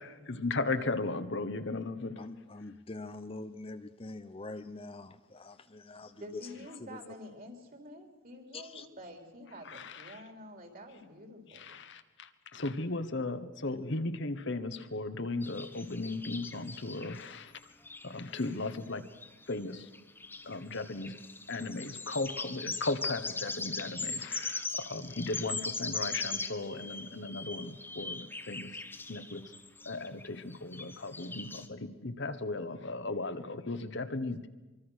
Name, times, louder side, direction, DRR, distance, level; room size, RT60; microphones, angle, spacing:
voice 1, 0.0-2.3 9.6-10.2 11.5-17.5 18.0-19.1 19.5-19.9 20.4-21.2 21.5-28.8 29.1-29.4 29.8-34.5, left 2 dB, 60° left, 1.3 m, -36 dB
voice 2, 2.2-6.5 6.8-7.0 8.5-8.9, left 2 dB, 30° left, 0.7 m, -44 dB
voice 3, 5.9-11.8, left 1 dB, 45° right, 3.8 m, -49 dB
sound 1, 15.4-17.2 17.6-17.7 17.8-18.1 18.4-18.5 19.1-19.6 19.9-31.7, left 3 dB, 10° left, 1.1 m, -40 dB
24.5 x 24.0 x 6.5 m
head